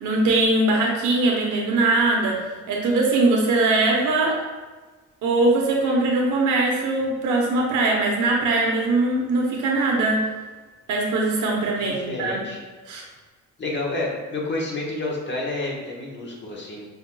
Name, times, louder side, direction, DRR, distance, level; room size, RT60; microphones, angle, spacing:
voice 1, 0.0-4.4 5.2-10.3 10.9-12.5 12.9-13.0, right 2 dB, 80° right, -1 dB, 0.9 m, -21 dB
voice 2, 11.8-12.6 13.6-16.9, left 2 dB, 40° left, -3 dB, 1.2 m, -29 dB
5.7 x 2.9 x 2.2 m, 1.3 s
cardioid pair, 90°, 30 cm